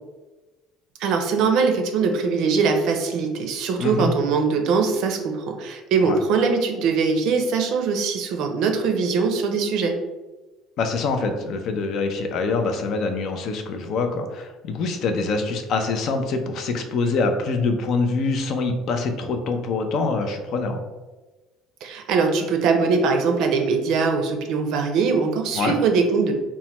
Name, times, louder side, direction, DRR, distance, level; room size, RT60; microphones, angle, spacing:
voice 1, 1.0-9.9 21.8-26.3, right 5 dB, 65° right, 4 dB, 0.5 m, -22 dB
voice 2, 3.8-4.1 6.1-6.2 10.8-20.8 25.5-25.7, left 3 dB, 55° left, 6 dB, 0.4 m, -25 dB
3.1 x 2.1 x 2.9 m, 1.2 s
cardioid pair, 125°, 0 cm